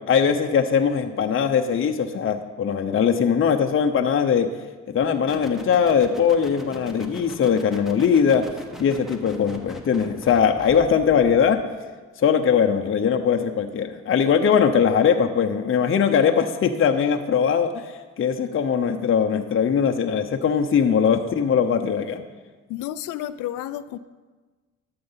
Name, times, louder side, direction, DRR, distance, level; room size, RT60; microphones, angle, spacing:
voice 1, 0.1-4.5 4.9-8.5 8.8-11.6 12.2-17.8 18.2-22.2, left 7 dB, 45° left, 4 dB, 0.9 m, -20 dB
sound 1, 5.3-11.6, equal, ahead, 1.3 m, -41 dB
voice 2, 22.7-24.0, left 12 dB, 90° left, 12 dB, 0.5 m, -31 dB
12.0 x 7.8 x 5.7 m, 1.3 s
cardioid pair, 90°, 30 cm